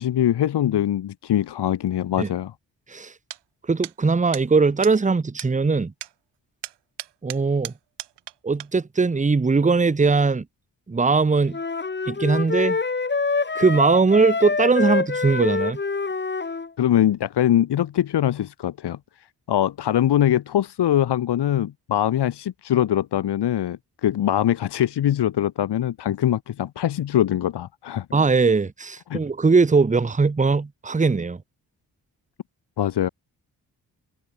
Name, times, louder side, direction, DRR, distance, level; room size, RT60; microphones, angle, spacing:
voice 1, 0.0-2.5 16.8-28.0 29.1-29.2 32.8-33.1, left 11 dB, 75° left, 1.5 m, -22 dB
sound 1, 3.3-3.4 3.8-3.9 4.3-4.5 4.8-5.0 5.4-5.5 6.0-6.1 6.6-8.3 8.6-8.7, right 13 dB, 85° right, 2.9 m, -35 dB
voice 2, 3.7-5.9 7.2-7.7 8.4-10.5 10.9-11.6 12.1-12.8 13.5-15.8 28.1-31.4, right 4 dB, 20° right, 0.9 m, -20 dB
sound 2, 11.5-16.7, left 4 dB, 25° left, 1.3 m, -26 dB
supercardioid pair, 45°, 41 cm